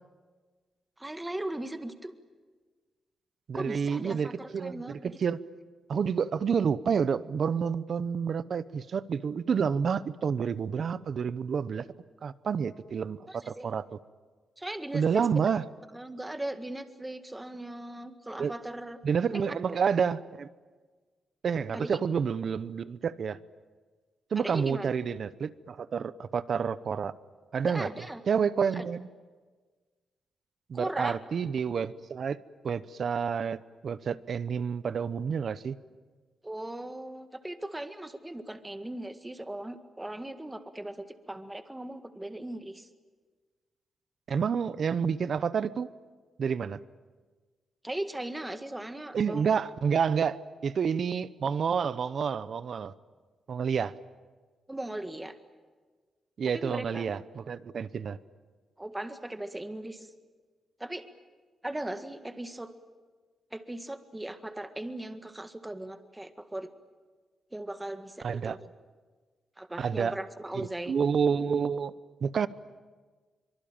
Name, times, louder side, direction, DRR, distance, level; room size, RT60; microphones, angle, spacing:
voice 1, 1.0-2.1 3.5-5.2 13.3-13.7 14.6-15.3 15.9-19.0 19.3-19.4 21.7-22.0 24.4-24.9 27.6-28.2 28.7-28.8 30.7-31.2 36.4-42.9 47.8-49.6 54.7-55.4 56.5-57.1 58.8-60.1 60.8-61.1 61.6-62.7 63.5-66.7 67.5-68.7 69.6-70.9, right 1 dB, 10° right, 8 dB, 1.7 m, -38 dB
voice 2, 3.5-5.4 5.9-11.9 12.2-13.8 14.9-15.6 18.4-18.5 19.0-20.5 21.4-23.4 24.3-27.1 27.5-27.9 28.3-29.1 30.7-32.4 32.6-35.7 44.3-45.9 46.4-46.8 49.1-52.9 53.5-53.9 56.4-58.2 68.2-68.6 69.8-70.1 70.5-71.9 72.2-72.5, right 6 dB, 55° right, 16 dB, 0.9 m, -29 dB
24.5 x 24.0 x 8.9 m, 1.4 s
cardioid pair, 115°, 0 cm